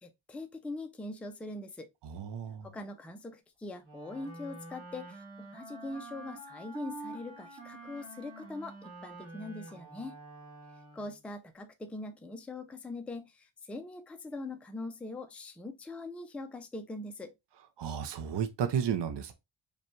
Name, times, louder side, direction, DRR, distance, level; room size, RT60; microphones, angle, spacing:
voice 1, 0.0-1.9 2.6-10.1 10.9-17.3, left 2 dB, 5° left, 0.3 m, -42 dB
voice 2, 2.0-2.7 17.8-19.3, right 8 dB, 60° right, 0.7 m, -33 dB
Wind instrument woodwind instrument, 3.8-11.2, right 2 dB, 30° right, 2.3 m, -47 dB
5.1 x 2.3 x 3.0 m
wide cardioid pair, 175°, 48 cm